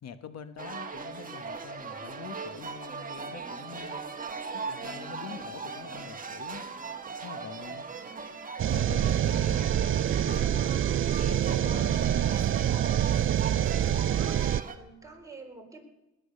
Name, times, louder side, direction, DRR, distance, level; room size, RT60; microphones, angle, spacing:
voice 1, 0.0-4.0 4.5-6.6 7.2-7.8 8.6-9.9 10.2-11.0 11.3-12.7, left 7 dB, 60° left, 11 dB, 1.2 m, -44 dB
sound 1, 0.6-14.8, right 4 dB, 25° right, 1.6 m, -39 dB
voice 2, 7.8-8.3 14.0-14.4 14.7-15.8, right 3 dB, 10° right, 1 dB, 3.9 m, -49 dB
sound 2, 8.6-14.6, right 10 dB, 45° right, 0.4 m, -26 dB
20.0 x 9.0 x 6.6 m, 1.0 s
cardioid pair, 90°, 30 cm